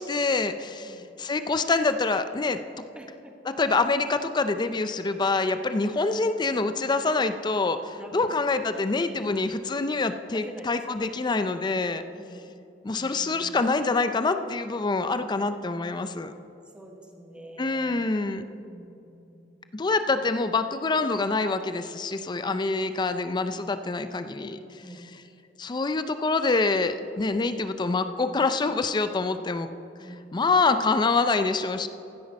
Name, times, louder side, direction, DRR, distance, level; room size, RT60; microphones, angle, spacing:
voice 1, 0.0-2.6 3.6-12.0 12.8-16.3 17.6-18.5 19.7-24.8 25.6-29.7 30.3-31.9, left 3 dB, 25° left, 10 dB, 0.4 m, -26 dB
voice 2, 2.9-3.5 5.8-6.0 8.0-8.3 9.2-9.3 10.3-11.2 12.1-12.6 12.9-13.6 16.7-18.2 18.7-19.7 24.8-25.1 30.0-30.3, right 1 dB, 5° right, 1 dB, 1.2 m, -46 dB
15.5 x 8.3 x 5.2 m, 2.8 s
head